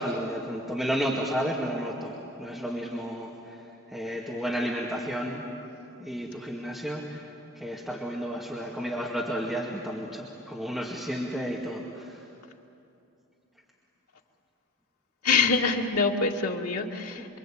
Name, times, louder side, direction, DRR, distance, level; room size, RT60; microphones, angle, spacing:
voice 1, 0.0-3.5 3.9-5.4 6.0-7.2 7.5-12.2, equal, ahead, -4 dB, 2.2 m, -32 dB
voice 2, 15.2-17.3, left 4 dB, 90° left, 0 dB, 2.4 m, -25 dB
27.5 x 24.0 x 8.8 m, 2.7 s
head